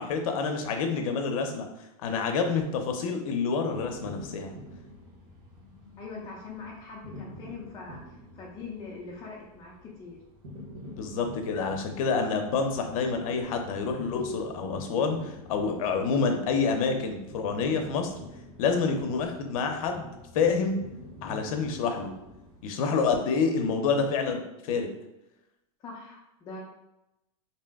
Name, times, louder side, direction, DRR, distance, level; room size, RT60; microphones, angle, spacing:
voice 1, 0.0-1.6 2.0-4.5 10.9-18.1 18.6-20.8 21.2-22.1 22.6-24.4 24.6-24.9, left 5 dB, 70° left, 5 dB, 0.6 m, -28 dB
sound 1, 3.7-22.6, left 1 dB, 80° right, 1.1 m, -46 dB
voice 2, 6.0-10.2 25.8-26.6, left 4 dB, 20° left, -4 dB, 0.4 m, -42 dB
2.7 x 2.1 x 3.4 m, 0.91 s
supercardioid pair, 150°, 18 cm